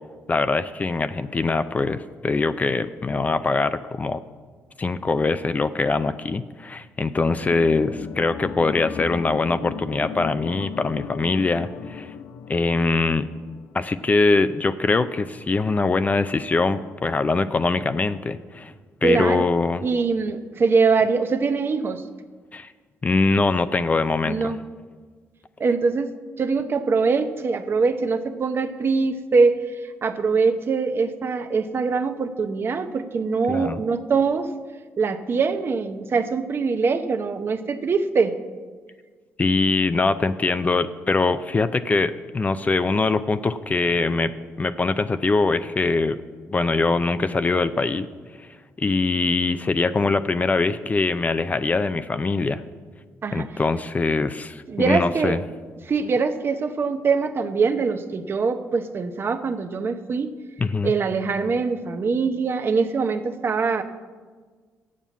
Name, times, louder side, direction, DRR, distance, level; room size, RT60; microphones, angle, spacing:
voice 1, 0.3-4.2 4.8-12.1 12.5-13.3 13.7-18.7 19.0-19.8 22.5-22.7 23.0-24.5 33.5-33.8 39.4-44.3 44.6-46.2 46.5-48.1 48.8-52.6 53.3-55.4 60.6-60.9, left 3 dB, 25° left, 12 dB, 0.4 m, -22 dB
sound 1, 7.3-14.4 14.7-14.8, left 7 dB, 85° left, 0.5 m, -37 dB
voice 2, 19.0-19.5 19.8-22.0 24.3-24.6 25.6-34.5 35.0-38.3 53.2-53.5 54.7-55.4 55.8-60.3 60.8-63.8, right 4 dB, 45° right, 9 dB, 0.7 m, -23 dB
7.5 x 7.1 x 8.1 m, 1.5 s
cardioid pair, 85°, 6 cm